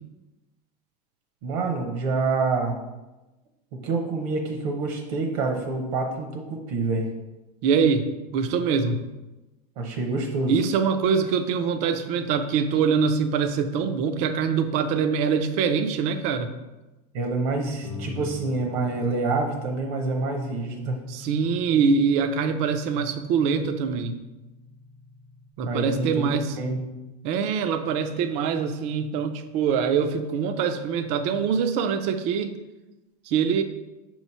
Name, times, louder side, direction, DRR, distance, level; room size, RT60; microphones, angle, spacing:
voice 1, 1.4-2.7 3.8-7.1 9.8-10.5 17.1-21.0 25.6-26.2 26.6-26.8, right 3 dB, 65° right, 2 dB, 0.9 m, -27 dB
voice 2, 7.6-9.1 10.5-16.5 21.1-24.2 25.6-26.6 27.2-32.6 33.3-33.6, right 6 dB, 35° right, 8 dB, 0.4 m, -24 dB
sound 1, 17.8-25.5, left 3 dB, 20° left, 0.6 m, -41 dB
6.3 x 3.1 x 5.4 m, 1.1 s
supercardioid pair, 175°, 21 cm